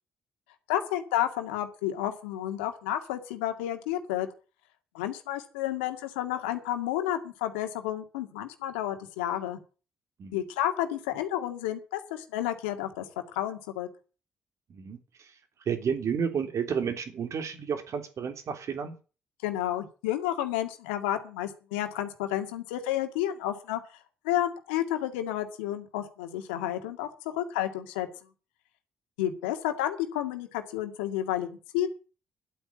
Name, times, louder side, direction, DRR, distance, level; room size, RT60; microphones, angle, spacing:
voice 1, 0.7-4.3 4.9-9.6 10.3-13.0 13.3-13.9 19.4-28.1 29.2-31.5 31.7-31.9, left 12 dB, 90° left, 7 dB, 1.9 m, -31 dB
voice 2, 14.7-15.3 15.6-18.9, right 7 dB, 60° right, 7 dB, 3.2 m, -31 dB
11.5 x 8.6 x 8.6 m, 0.35 s
hypercardioid pair, 50°, 6 cm